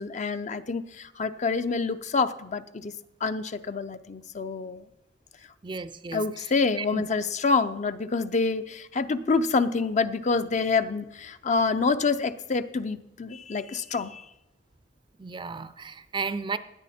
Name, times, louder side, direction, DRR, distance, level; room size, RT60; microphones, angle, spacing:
voice 1, 0.0-2.9 3.2-4.8 6.1-14.2, left 4 dB, 40° left, 0.5 m, -27 dB
voice 2, 5.6-6.5 6.8-7.0 15.2-16.6, right 4 dB, 25° right, 0.5 m, -34 dB
17.0 x 9.8 x 4.3 m
head